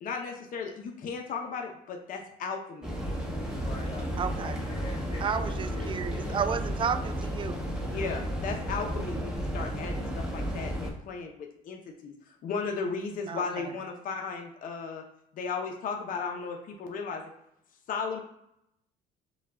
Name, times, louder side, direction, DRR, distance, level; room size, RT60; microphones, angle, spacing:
voice 1, 0.0-2.9 7.9-12.1 12.4-15.0 15.4-17.2 17.9-18.2, left 5 dB, 55° left, 2 dB, 0.7 m, -35 dB
sound 1, 2.8-10.9, equal, 5° right, 0.9 m, -33 dB
voice 2, 3.4-6.5, left 3 dB, 35° left, -3 dB, 1.6 m, -44 dB
voice 3, 4.2-4.6 5.2-7.6 13.3-13.7, right 7 dB, 30° right, 11 dB, 0.4 m, -32 dB
5.3 x 2.3 x 3.6 m, 0.77 s
cardioid pair, 110°, 17 cm